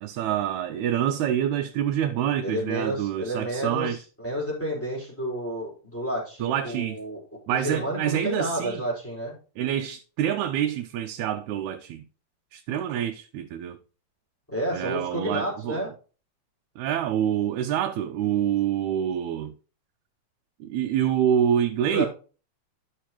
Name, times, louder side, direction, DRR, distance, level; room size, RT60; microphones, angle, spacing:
voice 1, 0.0-4.0 6.4-7.0 7.5-8.8 9.6-12.0 12.5-13.8 14.7-15.8 16.8-19.5 20.6-22.1, right 10 dB, 80° right, 1.9 m, -26 dB
voice 2, 2.4-7.2 7.5-9.4 14.5-15.9 21.9-22.1, equal, 5° left, 4.3 m, -30 dB
11.0 x 6.6 x 2.9 m
omnidirectional pair, 3.4 m